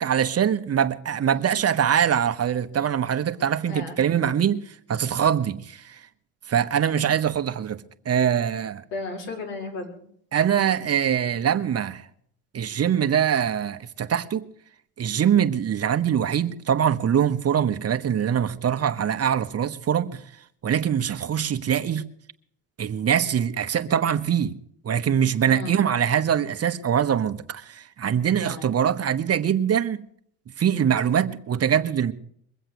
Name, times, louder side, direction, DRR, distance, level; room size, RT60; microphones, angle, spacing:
voice 1, 0.0-4.6 4.9-6.0 6.5-8.8 10.3-12.0 12.5-14.5 15.0-20.2 20.6-22.0 22.8-24.5 24.8-30.0 30.6-32.1, right 8 dB, 40° right, 1.1 m, -23 dB
voice 2, 1.2-1.7 3.6-4.0 7.0-7.1 8.9-10.0 25.4-25.8 28.4-28.7, left 3 dB, 85° left, 5.1 m, -35 dB
22.5 x 7.9 x 7.9 m
supercardioid pair, 75°, 39 cm